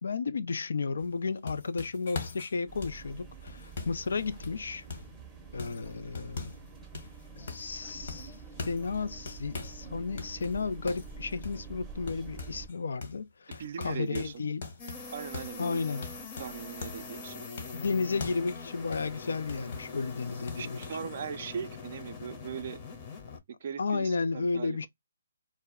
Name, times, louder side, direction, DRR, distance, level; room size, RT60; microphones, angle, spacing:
voice 1, 0.0-4.9 5.5-6.5 7.4-8.4 8.6-14.6 15.6-16.1 17.7-20.8 23.8-24.9, left 4 dB, 70° left, 0.4 m, -33 dB
sound 1, 1.0-5.2 5.6-6.7 6.9-7.8 8.1-9.8 10.2-12.8 13.0-13.2 13.5-17.1 17.6-20.0 20.5-20.9, left 4 dB, 55° left, 1.1 m, -42 dB
sound 2, 2.7-12.7, right 5 dB, 5° right, 0.6 m, -47 dB
voice 2, 13.6-14.4 15.1-15.8 16.4-17.4 20.6-22.8 23.5-24.9, right 7 dB, 50° right, 0.4 m, -39 dB
sound 3, 14.8-23.4, left 4 dB, 30° left, 0.7 m, -43 dB
2.3 x 2.1 x 3.5 m
hypercardioid pair, 150°, 0 cm